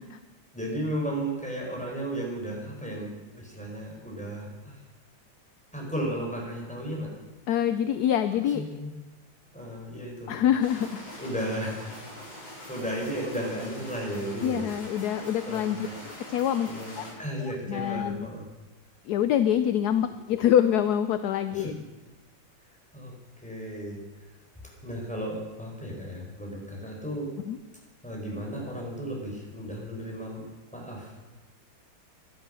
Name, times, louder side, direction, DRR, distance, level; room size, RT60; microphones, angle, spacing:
voice 1, 0.5-4.8 5.7-7.1 8.4-8.9 9.5-10.3 11.2-11.9 12.7-14.7 15.0-15.9 16.7-18.5 21.5-21.7 22.9-23.1 23.4-24.0 24.8-27.3 28.0-31.1, right 1 dB, 5° left, -2 dB, 4.4 m, -34 dB
voice 2, 7.5-8.6 10.3-11.0 14.4-15.9 16.3-16.7 17.0-17.1 17.7-18.3 19.1-21.7 27.5-27.6, left 10 dB, 70° left, 11 dB, 1.0 m, -25 dB
sound 1, 10.6-17.1, left 1 dB, 85° left, 6.4 m, -43 dB
15.5 x 11.5 x 6.3 m, 1.1 s
omnidirectional pair, 2.1 m